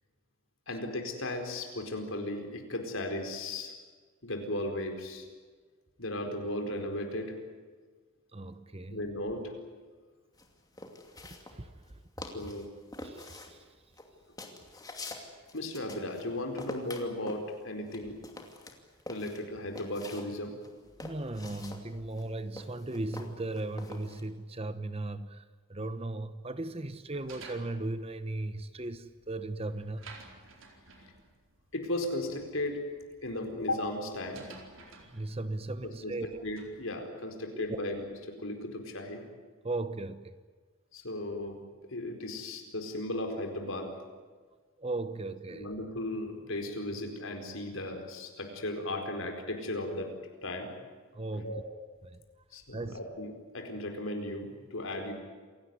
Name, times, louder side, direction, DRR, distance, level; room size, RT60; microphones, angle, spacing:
voice 1, 0.7-3.7 4.2-5.3 6.0-7.4 8.9-9.5 12.2-12.7 15.5-18.2 19.1-20.5 31.7-32.8 33.2-34.4 36.0-39.2 40.9-43.9 45.5-50.1 50.4-50.7 51.4-51.6 52.5-55.1, left 1 dB, 70° left, 4 dB, 4.5 m, -36 dB
voice 2, 8.3-9.1 11.2-11.7 13.0-13.7 21.0-25.4 25.7-30.2 35.0-36.4 37.5-37.8 39.6-40.4 44.8-45.7 51.1-51.6 52.0-52.2 52.7-53.0, right 2 dB, 30° right, 12 dB, 1.0 m, -37 dB
sound 1, 10.4-11.9 12.2-12.7 12.9-16.3 16.6-20.3 20.6-24.2, left 2 dB, 20° left, 2.6 m, -45 dB
sound 2, 27.1-36.9, right 3 dB, 65° right, 4.3 m, -54 dB
28.0 x 17.5 x 9.6 m, 1.5 s
head